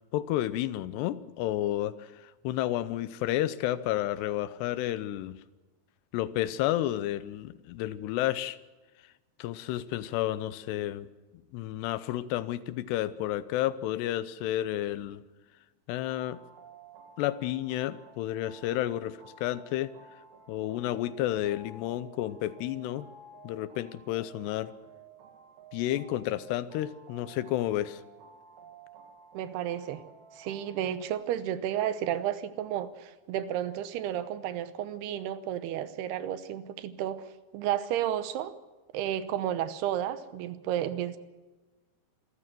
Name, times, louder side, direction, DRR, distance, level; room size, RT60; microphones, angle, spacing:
voice 1, 0.1-5.4 6.1-8.6 9.4-11.1 11.5-15.2 15.9-16.4 17.2-19.9 20.5-23.1 23.4-24.7 25.7-28.0, left 14 dB, 85° left, 15 dB, 3.0 m, -31 dB
sound 1, 16.0-31.1, right 4 dB, 60° right, 3.8 m, -53 dB
voice 2, 29.3-30.0 30.4-37.3 37.5-38.5 38.9-41.2, right 11 dB, 80° right, 13 dB, 2.9 m, -32 dB
27.0 x 14.5 x 7.6 m, 1.2 s
omnidirectional pair, 4.7 m